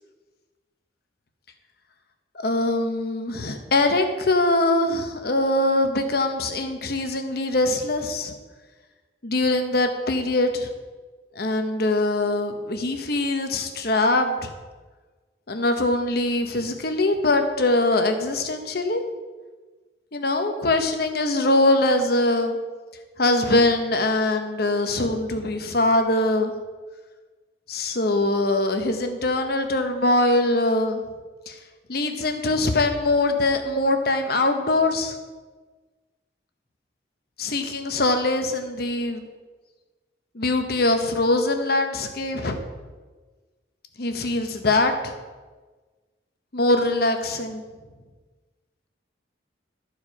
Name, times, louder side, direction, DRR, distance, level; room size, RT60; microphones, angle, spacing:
voice 1, 2.3-8.3 9.2-10.7 11.3-14.5 15.5-19.0 20.1-22.6 23.2-26.5 27.7-31.0 31.5-31.6 31.9-35.2 37.4-39.3 40.3-42.6 44.0-45.1 46.5-47.6, left 2 dB, 55° left, 6 dB, 0.9 m, -22 dB
13.0 x 4.7 x 4.8 m, 1.3 s
head